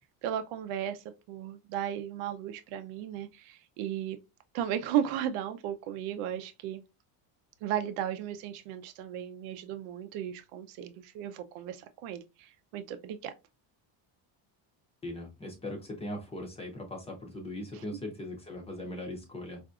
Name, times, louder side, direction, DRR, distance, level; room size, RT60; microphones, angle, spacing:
voice 1, 0.2-4.2 4.5-6.8 7.6-13.3 17.7-17.8, right 10 dB, 90° right, 0.6 m, -35 dB
voice 2, 15.0-19.6, left 1 dB, 15° left, 0.5 m, -39 dB
4.7 x 2.6 x 2.3 m
cardioid pair, 175°, 49 cm